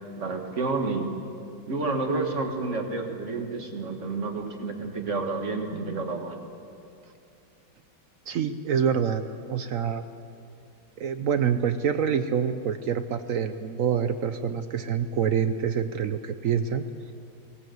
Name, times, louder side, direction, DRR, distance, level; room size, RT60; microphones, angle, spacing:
voice 1, 0.2-1.1 1.7-6.4, right 3 dB, 40° right, 4 dB, 2.0 m, -30 dB
voice 2, 8.3-9.2 9.5-10.0 11.0-16.8, right 7 dB, 70° right, 10 dB, 0.8 m, -26 dB
19.0 x 18.0 x 7.8 m, 2.6 s
omnidirectional pair, 2.2 m